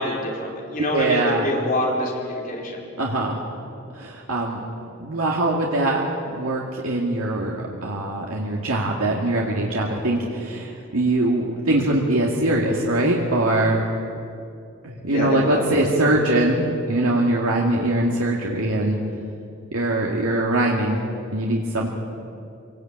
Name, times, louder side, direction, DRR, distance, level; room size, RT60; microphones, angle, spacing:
voice 1, 0.0-2.8 15.0-16.3, left 1 dB, 40° left, -1 dB, 4.6 m, -26 dB
voice 2, 0.9-1.5 3.0-3.4 3.9-4.6 5.0-13.8 14.8-16.6 16.9-19.0 19.7-21.0 21.3-21.9, right 1 dB, 85° right, -2 dB, 2.3 m, -22 dB
24.5 x 18.5 x 8.9 m, 2.6 s
head